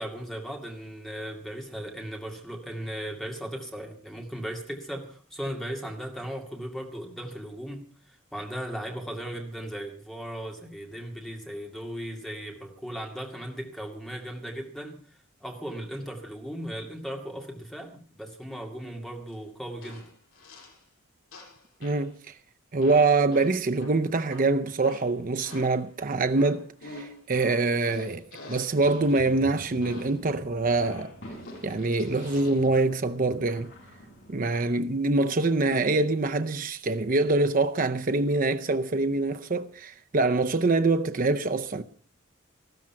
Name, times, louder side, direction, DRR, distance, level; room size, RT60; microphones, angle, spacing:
voice 1, 0.0-7.8 8.3-15.0 15.4-20.1, equal, ahead, 2.3 m, -37 dB
sound 1, 19.3-19.4 19.8-20.8 21.3-22.1 22.8-25.9 26.3-29.2 29.8-30.3 30.8-32.7, left 2 dB, 75° left, 6.6 m, -46 dB
voice 2, 21.8-22.3 22.7-31.1 31.6-33.7 34.3-41.8, right 3 dB, 40° right, 0.6 m, -25 dB
sound 2, 28.7-34.7, equal, 55° left, 7.2 m, -46 dB
14.5 x 13.5 x 5.7 m
head